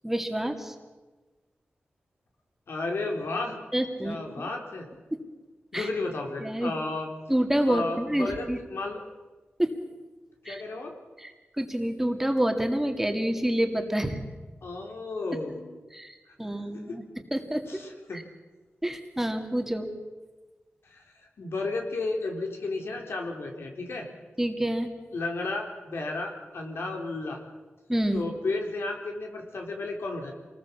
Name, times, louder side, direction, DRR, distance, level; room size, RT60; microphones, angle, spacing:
voice 1, 0.0-0.7 3.7-4.5 5.7-5.9 6.4-6.7 7.3-8.6 9.6-9.7 10.5-10.6 11.2-14.3 15.9-17.0 17.3-17.6 18.1-18.2 18.8-19.9 24.4-24.9 27.9-28.2, right 1 dB, 10° right, 5 dB, 2.2 m, -28 dB
voice 2, 2.7-3.6 4.0-4.9 5.7-7.1 7.7-9.0 10.5-10.9 14.6-15.7 17.7-18.2 20.8-21.0 21.4-24.1 25.1-27.4 28.1-30.3, left 3 dB, 85° left, 2 dB, 4.1 m, -33 dB
27.5 x 20.0 x 7.2 m, 1.3 s
wide cardioid pair, 125°, 4 cm